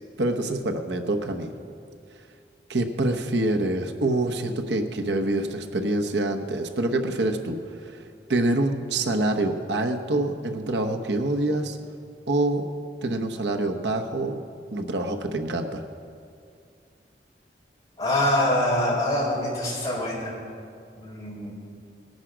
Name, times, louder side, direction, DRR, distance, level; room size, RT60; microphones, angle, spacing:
voice 1, 0.2-1.5 2.7-11.8 12.3-12.6 13.0-14.4 14.7-15.8, right 2 dB, 85° right, 4 dB, 1.0 m, -26 dB
voice 2, 18.0-20.4 21.0-21.5, left 1 dB, 20° left, -5 dB, 4.1 m, -25 dB
19.0 x 10.5 x 5.1 m, 2.4 s
head